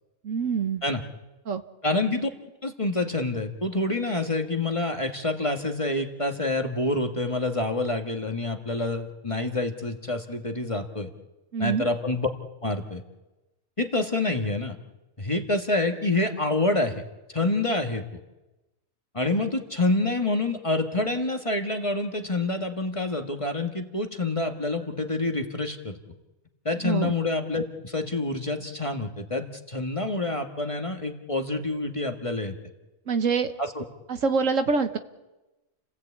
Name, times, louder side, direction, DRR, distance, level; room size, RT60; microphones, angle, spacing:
voice 1, 0.2-0.8 1.5-1.6 11.5-11.8 26.8-27.1 33.1-33.5 34.1-35.0, right 5 dB, 65° right, 8 dB, 1.5 m, -25 dB
voice 2, 1.8-2.3 2.6-11.1 11.6-12.3 12.6-13.0 13.8-14.8 15.2-16.9 17.3-18.0 19.1-26.0 26.6-32.5 33.6-33.8, left 2 dB, 20° left, 4 dB, 1.6 m, -27 dB
29.5 x 17.0 x 8.5 m, 1.1 s
omnidirectional pair, 1.5 m